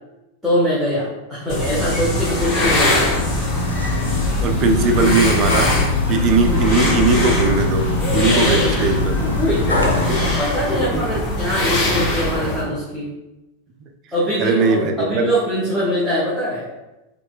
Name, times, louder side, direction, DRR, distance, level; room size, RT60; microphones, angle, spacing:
voice 1, 0.4-3.3 8.4-8.7 9.2-13.1 14.1-16.7, equal, ahead, -9 dB, 0.8 m, -23 dB
sound 1, 1.5-12.6, left 1 dB, 30° left, 1.5 m, -22 dB
sound 2, 3.1-10.4, left 3 dB, 80° left, 0.4 m, -22 dB
voice 2, 4.4-5.7 6.1-9.2 10.1-10.4 10.9-11.0 14.4-15.3, right 3 dB, 35° right, 5 dB, 0.4 m, -19 dB
4.2 x 2.3 x 2.4 m, 0.97 s
figure-of-eight pair, 90°, 0 cm